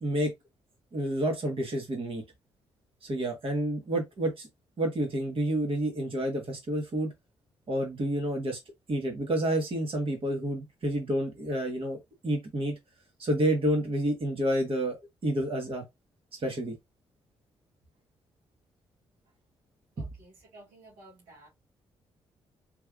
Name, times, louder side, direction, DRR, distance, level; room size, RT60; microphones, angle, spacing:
voice 1, 0.9-2.2 3.0-4.5 4.8-7.1 7.7-8.6 8.9-12.7 13.2-15.0 15.2-15.8 16.4-16.7 20.0-20.1, right 1 dB, 50° right, 1.6 m, -29 dB
voice 2, 20.0-21.5, right 2 dB, 90° right, 1.8 m, -53 dB
3.4 x 3.2 x 2.3 m
hypercardioid pair, 45°, 12 cm